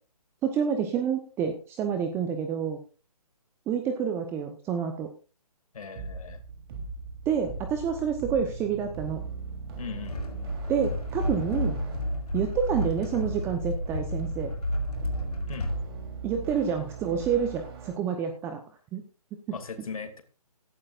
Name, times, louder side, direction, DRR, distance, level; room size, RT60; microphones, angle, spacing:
voice 1, 0.4-2.8 3.7-5.1 7.3-9.2 10.7-11.8 12.3-14.5 16.2-18.6 18.9-19.0, right 7 dB, 10° right, 6 dB, 0.9 m, -28 dB
voice 2, 5.7-6.4 9.8-10.2 15.5-15.7 19.5-20.2, left 5 dB, 60° left, 7 dB, 2.5 m, -38 dB
sound 1, 5.9-17.9, right 4 dB, 35° right, 3.5 m, -39 dB
sound 2, 10.0-15.8, left 1 dB, 80° left, 5.1 m, -32 dB
17.0 x 11.5 x 2.5 m, 0.35 s
hypercardioid pair, 150°, 20 cm